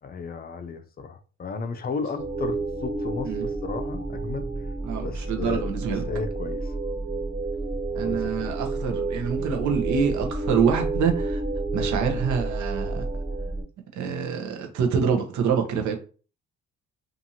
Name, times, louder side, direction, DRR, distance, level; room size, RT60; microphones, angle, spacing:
voice 1, 0.0-4.7 5.0-6.9 8.0-8.7, left 4 dB, 30° left, 0.5 m, -34 dB
sound 1, 2.2-13.6, right 3 dB, 20° right, 0.8 m, -30 dB
voice 2, 4.8-6.0 7.9-11.4 11.7-13.1 13.9-16.0, right 6 dB, 70° right, 0.7 m, -26 dB
2.7 x 2.5 x 2.7 m
cardioid pair, 90°, 30 cm